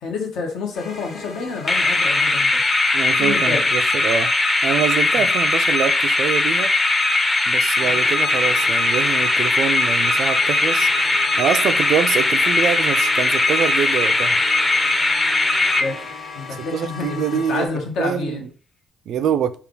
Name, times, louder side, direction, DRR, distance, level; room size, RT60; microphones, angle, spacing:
voice 1, 0.0-2.7 3.2-3.7 5.2-5.3 7.8-7.9 15.8-15.9 16.3-18.4, left 4 dB, 80° left, 1.0 m, -28 dB
sound 1, 0.7-3.5 7.8-17.7, left 3 dB, 40° left, 1.2 m, -38 dB
sound 2, 1.7-16.3, left 2 dB, 25° left, 0.6 m, -19 dB
voice 2, 2.9-4.3 4.6-6.7 7.5-14.4 16.6-17.7 18.0-18.5 19.1-19.5, right 8 dB, 70° right, 0.3 m, -25 dB
3.4 x 2.3 x 3.7 m
cardioid pair, 90°, 0 cm